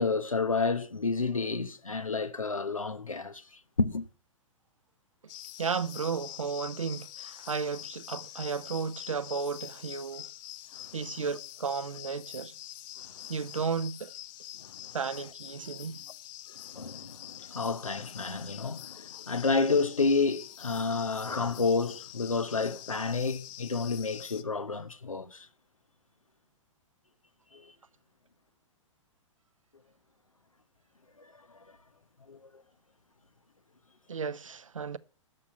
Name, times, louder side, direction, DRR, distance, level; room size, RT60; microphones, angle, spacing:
voice 1, 0.0-3.4 3.8-4.1 10.8-11.0 13.2-13.3 14.6-14.9 16.5-25.5 27.5-27.7 31.2-31.6 32.3-32.4, left 4 dB, 85° left, 0.9 m, -30 dB
sound 1, 5.3-24.4, left 14 dB, 40° left, 0.7 m, -46 dB
voice 2, 5.6-10.3 10.9-12.5 13.3-14.1 14.9-16.0 34.1-35.0, right 5 dB, 75° right, 0.7 m, -34 dB
12.0 x 6.0 x 7.2 m
figure-of-eight pair, 110°, 17 cm